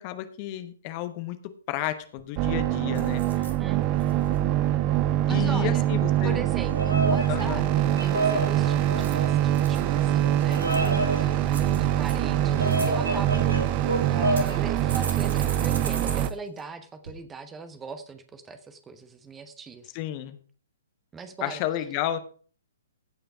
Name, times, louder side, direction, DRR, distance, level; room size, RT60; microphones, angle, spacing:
voice 1, 0.0-3.5 5.2-6.5 7.3-7.7 19.9-20.4 21.4-22.2, left 13 dB, 30° left, 11 dB, 1.0 m, -32 dB
sound 1, 1.8-1.9 2.2-2.5 2.9-3.5 4.0-4.4 8.8-9.8 10.3-11.0 11.5-12.1 12.5-12.9 13.7-13.8 14.4-16.3 16.6-16.7 17.0-17.1, right 4 dB, 60° right, 2.4 m, -38 dB
sound 2, 2.4-16.3, right 12 dB, 30° right, 0.6 m, -24 dB
voice 2, 3.6-4.3 5.3-5.8 6.2-19.9 21.1-21.6, right 4 dB, 10° right, 10 dB, 1.0 m, -40 dB
Bird vocalization bird call bird song, 6.6-14.6, right 1 dB, 80° right, 2.3 m, -30 dB
16.0 x 5.7 x 4.8 m, 0.42 s
figure-of-eight pair, 120°, 0 cm